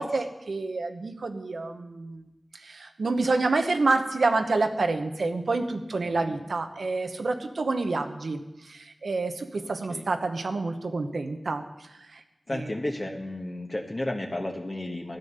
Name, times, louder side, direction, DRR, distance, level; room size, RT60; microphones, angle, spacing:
voice 1, 0.0-2.2 2.5-12.2 12.5-12.7, right 3 dB, 80° right, 7 dB, 1.0 m, -28 dB
voice 2, 9.6-10.0 12.5-15.2, left 1 dB, 35° left, 0 dB, 1.2 m, -33 dB
12.5 x 9.3 x 6.7 m, 0.98 s
wide cardioid pair, 55°, 0 cm